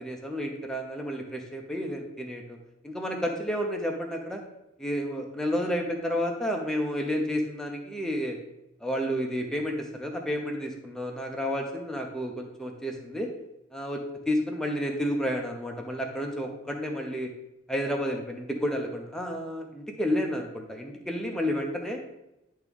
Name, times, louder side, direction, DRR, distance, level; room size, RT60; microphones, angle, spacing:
voice 1, 0.0-2.6 2.8-4.4 4.8-8.4 8.8-13.3 13.7-17.3 17.7-22.0, equal, 5° left, 1 dB, 0.7 m, -31 dB
10.0 x 3.6 x 3.5 m, 0.90 s
head